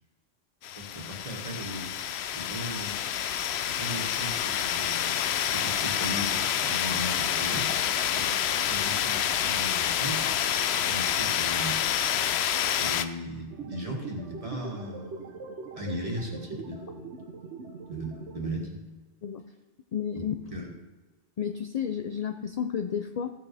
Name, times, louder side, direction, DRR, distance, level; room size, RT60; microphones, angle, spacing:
sound 1, 0.6-13.1, left 9 dB, 75° left, 0.8 m, -28 dB
voice 1, 0.8-1.9 2.3-3.0 3.7-5.1 5.5-7.7 8.1-8.4 8.7-10.2 10.9-11.8 12.8-15.4 15.8-17.0 17.9-18.8 20.1-20.2 20.5-20.7, equal, 30° right, -1 dB, 1.9 m, -37 dB
sound 2, 13.5-18.5, right 4 dB, 80° right, 1.2 m, -42 dB
voice 2, 19.9-20.3 21.4-23.3, left 8 dB, 55° left, 7 dB, 0.4 m, -31 dB
15.5 x 6.9 x 3.4 m, 1.2 s
omnidirectional pair, 1.1 m